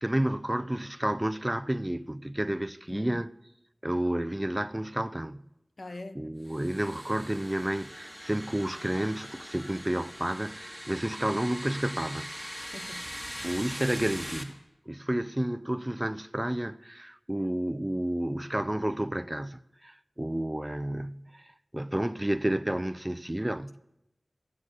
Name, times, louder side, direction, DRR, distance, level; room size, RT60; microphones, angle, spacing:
voice 1, 0.0-3.3 3.8-5.5 6.2-12.3 13.4-14.6 14.9-23.8, right 1 dB, 20° right, 0.5 m, -31 dB
voice 2, 2.9-3.3 5.8-6.3 12.6-13.1, left 2 dB, 60° left, 0.8 m, -43 dB
sound 1, 6.4-14.4, equal, 5° left, 1.9 m, -41 dB
12.0 x 10.5 x 8.1 m
wide cardioid pair, 55°, 0 cm